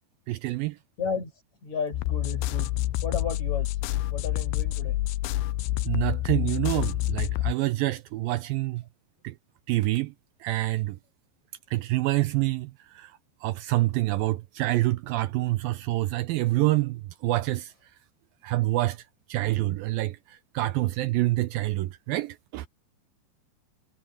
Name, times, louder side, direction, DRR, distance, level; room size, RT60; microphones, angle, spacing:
voice 1, 0.3-0.8 5.9-8.8 9.2-9.4 9.7-10.1 10.4-11.0 11.7-13.1 13.4-17.7 18.4-19.0 19.3-20.2 20.5-22.7, right 18 dB, 85° right, 2.1 m, -27 dB
voice 2, 1.0-1.3 1.6-2.7 3.0-3.8 4.1-5.0, left 5 dB, 40° left, 9.0 m, -33 dB
sound 1, 1.9-7.5, left 15 dB, 80° left, 2.4 m, -28 dB
omnidirectional pair, 4.8 m